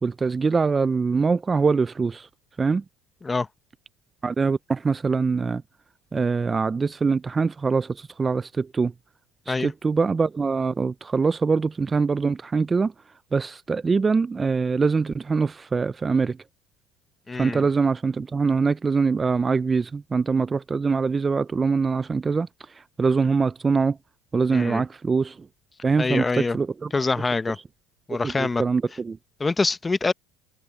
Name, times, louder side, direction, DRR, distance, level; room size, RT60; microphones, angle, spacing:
voice 1, 0.0-2.3 2.6-2.8 4.2-5.6 6.1-8.9 9.5-12.9 13.3-16.4 17.4-22.5 23.0-24.0 24.3-25.4 25.8-26.9 28.1-29.2, right 4 dB, 20° right, 0.4 m, -23 dB
voice 2, 17.3-17.7 24.5-24.8 26.0-26.6 26.9-27.6 28.1-28.6 29.4-30.1, left 3 dB, 15° left, 0.8 m, -25 dB
supercardioid pair, 110°, 0 cm